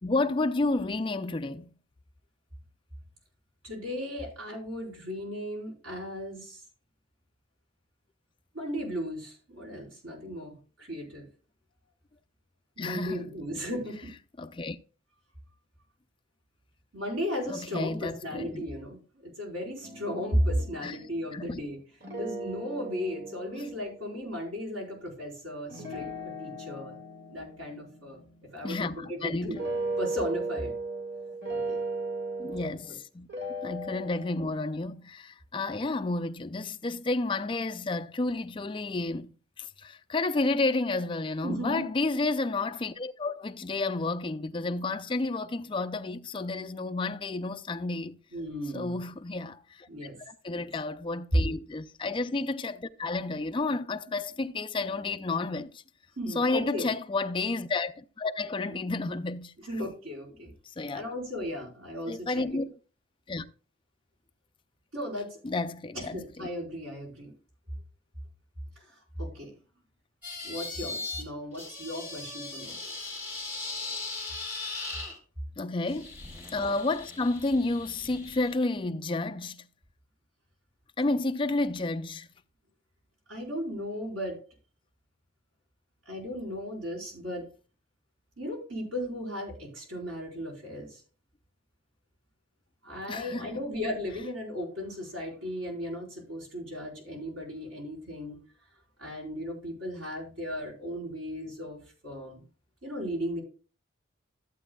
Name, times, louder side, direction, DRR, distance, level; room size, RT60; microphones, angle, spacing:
voice 1, 0.0-1.7 12.8-13.4 14.4-14.8 17.5-18.6 20.8-21.0 21.3-21.6 23.6-23.7 28.6-29.6 32.4-33.3 33.6-39.3 39.6-48.2 48.7-49.9 50.3-55.8 56.3-59.5 60.6-61.1 62.1-62.7 63.3-63.5 65.4-66.5 75.6-76.2 76.5-79.7 81.0-82.3 93.1-93.5, left 2 dB, 25° left, 0.4 m, -31 dB
voice 2, 3.6-6.6 8.5-11.2 12.8-14.1 16.9-21.8 22.2-26.9 27.3-28.2 28.5-29.6 30.0-30.7 31.7-31.8 32.9-33.0 41.4-41.8 48.3-49.0 49.9-50.2 50.5-50.7 51.3-51.4 56.2-56.9 58.7-58.8 59.6-60.5 60.9-62.4 64.9-65.4 65.9-67.3 68.8-68.9 69.2-69.5 70.4-72.8 83.3-84.4 86.1-87.5 88.4-91.0 92.8-98.4 99.0-102.4 102.8-103.4, equal, 80° right, 4.6 m, -35 dB
sound 1, 19.8-21.7 22.0-24.5 25.7-29.1 29.5-33.0 33.3-34.6, right 2 dB, 55° right, 2.0 m, -37 dB
sound 2, 70.2-71.2 71.5-75.2 75.9-78.5, left 3 dB, 10° right, 3.0 m, -39 dB
14.0 x 8.0 x 2.3 m
head